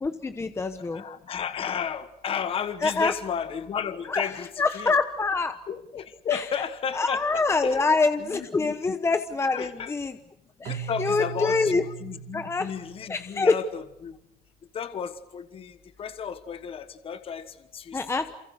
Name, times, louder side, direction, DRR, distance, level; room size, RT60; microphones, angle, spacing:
voice 1, 0.0-1.0 2.8-3.1 4.1-4.3 4.6-5.6 6.3-6.4 7.0-10.1 10.6-11.8 12.3-12.7 13.1-13.6 17.9-18.3, left 4 dB, 15° left, 9 dB, 1.0 m, -25 dB
voice 2, 0.8-4.9 5.7-7.9 8.2-9.0 9.5-9.9 10.6-14.2 14.7-18.0 18.3-18.4, left 7 dB, 35° left, 11 dB, 1.3 m, -33 dB
Keyboard (musical), 10.6-13.6, right 8 dB, 65° right, 3.5 m, -39 dB
28.5 x 28.0 x 6.5 m, 0.80 s
cardioid pair, 165°, 17 cm